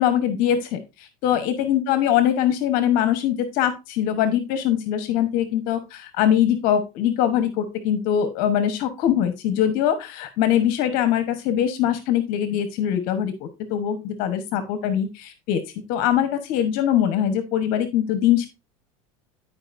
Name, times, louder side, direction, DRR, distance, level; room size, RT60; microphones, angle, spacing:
voice 1, 0.0-15.6 15.9-18.5, left 10 dB, 60° left, 10 dB, 1.1 m, -22 dB
12.5 x 4.9 x 2.6 m, 0.25 s
supercardioid pair, 130°, 17 cm